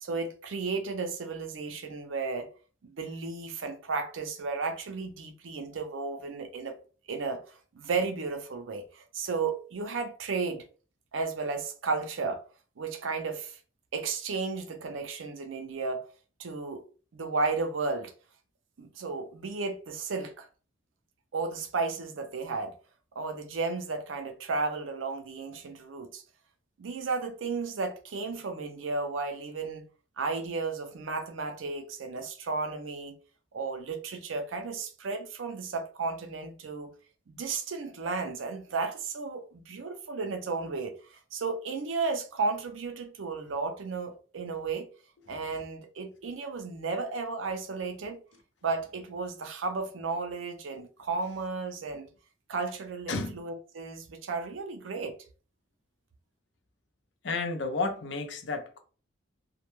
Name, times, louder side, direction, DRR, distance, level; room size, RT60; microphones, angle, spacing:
voice 1, 0.0-2.5 2.8-6.8 7.1-10.6 11.1-12.4 12.8-13.6 13.9-16.0 16.4-16.8 17.1-18.1 18.8-20.5 21.3-22.7 23.2-26.2 26.8-29.9 30.2-33.2 33.5-36.9 37.3-44.9 45.3-48.2 48.6-52.1 52.5-55.2, right 4 dB, 85° right, 0.5 m, -33 dB
voice 2, 53.1-53.4 57.2-58.8, left 3 dB, 65° left, 0.5 m, -32 dB
2.2 x 2.1 x 3.0 m
head